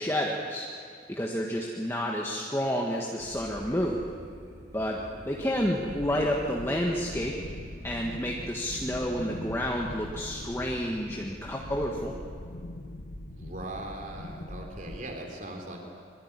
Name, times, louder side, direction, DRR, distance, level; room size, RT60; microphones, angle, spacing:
voice 1, 0.0-4.0 4.7-5.0 5.3-7.4 7.8-12.1, equal, 15° left, -1 dB, 1.6 m, -30 dB
sound 1, 3.2-11.3, equal, 65° right, 7.8 m, -47 dB
sound 2, 5.8-15.0, left 1 dB, 85° left, 1.6 m, -42 dB
voice 2, 13.4-15.8, right 1 dB, 45° right, 2 dB, 3.6 m, -39 dB
24.5 x 22.5 x 9.8 m, 2.2 s
head